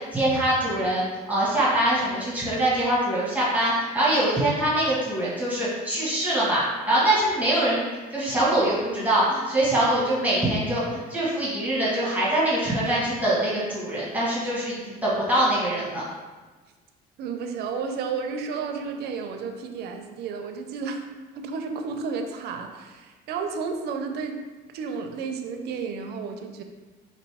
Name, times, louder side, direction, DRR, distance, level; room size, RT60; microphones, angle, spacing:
voice 1, 0.1-7.9 8.1-16.0, right 1 dB, 10° right, -8 dB, 1.4 m, -23 dB
voice 2, 17.2-21.1 21.3-24.4 24.7-26.6, right 5 dB, 75° right, 5 dB, 0.5 m, -32 dB
5.1 x 2.6 x 3.4 m, 1.3 s
cardioid pair, 110°, 17 cm